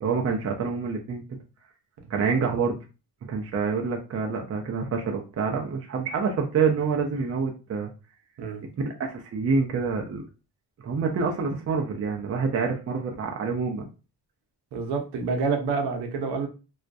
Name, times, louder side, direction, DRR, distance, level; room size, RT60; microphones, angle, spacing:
voice 1, 0.0-1.2 2.1-2.8 3.2-7.9 8.8-10.2 10.8-13.9, right 5 dB, 35° right, 2 dB, 0.5 m, -27 dB
voice 2, 14.7-16.5, right 4 dB, 70° right, 3 dB, 0.8 m, -28 dB
2.3 x 2.1 x 2.5 m, 0.31 s
cardioid pair, 75°, 42 cm